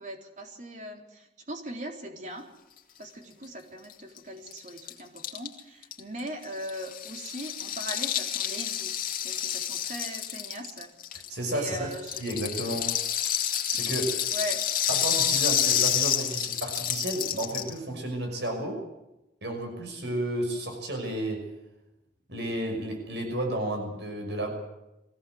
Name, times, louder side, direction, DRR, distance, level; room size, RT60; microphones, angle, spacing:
voice 1, 0.0-2.5 3.0-8.9 9.2-10.9 11.5-12.2 14.3-14.7, equal, 45° right, 3 dB, 4.0 m, -39 dB
Rattle (instrument), 3.9-4.0 4.2-4.3 4.5-11.6 11.9-17.8, left 10 dB, 50° left, 2.5 m, -29 dB
voice 2, 11.3-11.9 12.2-12.9 13.7-14.2 14.9-18.8 19.4-21.5 22.3-24.5, right 1 dB, 80° right, 3 dB, 6.0 m, -32 dB
23.0 x 17.0 x 7.9 m, 0.92 s
head